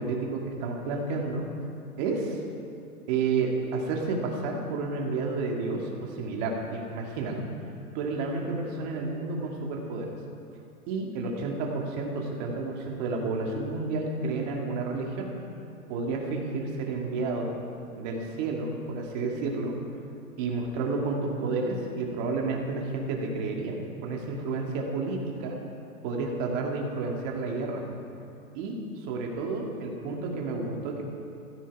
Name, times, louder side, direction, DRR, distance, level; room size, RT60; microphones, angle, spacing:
voice 1, 0.0-1.5 2.0-2.4 3.1-7.4 7.9-10.1 10.9-15.3 15.9-17.6 18.0-19.8 20.4-23.8 24.0-25.6 26.0-27.8 28.5-31.0, right 3 dB, 30° right, 0 dB, 2.1 m, -31 dB
15.0 x 13.5 x 4.8 m, 2.6 s
hypercardioid pair, 150°, 44 cm